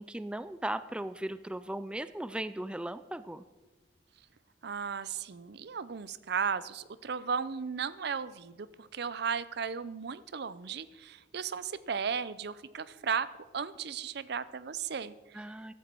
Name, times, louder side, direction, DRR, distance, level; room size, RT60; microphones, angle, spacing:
voice 1, 0.0-3.4 15.3-15.7, right 1 dB, 5° right, 13 dB, 0.3 m, -37 dB
voice 2, 4.6-13.3 13.5-15.5, right 6 dB, 60° right, 16 dB, 0.5 m, -35 dB
14.5 x 12.5 x 4.5 m, 1.2 s
head